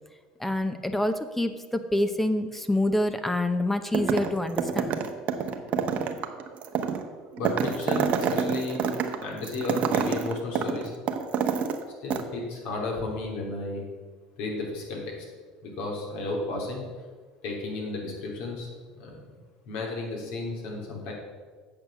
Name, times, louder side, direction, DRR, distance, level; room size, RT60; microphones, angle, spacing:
voice 1, 0.4-4.9, left 1 dB, 5° left, 9 dB, 0.7 m, -27 dB
sound 1, 3.9-4.3 4.6-11.8 12.1-12.2, right 7 dB, 50° right, 1.1 m, -27 dB
voice 2, 7.4-8.8 9.2-10.9 12.0-13.9 14.4-15.1 15.6-16.9 17.4-18.7 19.0-19.2 19.6-21.1, left 2 dB, 70° left, -1 dB, 3.1 m, -33 dB
8.6 x 6.5 x 6.6 m, 1.5 s
supercardioid pair, 90°, 3 cm